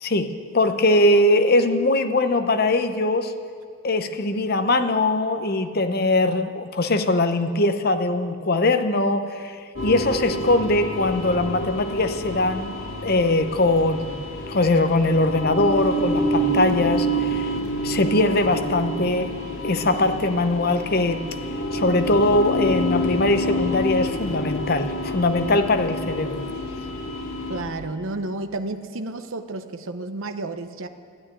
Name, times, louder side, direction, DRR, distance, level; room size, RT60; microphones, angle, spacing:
voice 1, 0.0-3.3 3.8-9.6 9.8-12.8 13.0-17.5 17.8-19.4 19.6-21.3 21.7-26.4, left 2 dB, 45° left, 9 dB, 0.8 m, -21 dB
sound 1, 9.8-27.6, equal, 75° left, 2.0 m, -28 dB
voice 2, 27.5-30.9, right 2 dB, 65° right, 8 dB, 0.8 m, -31 dB
13.0 x 9.8 x 9.8 m, 2.1 s
head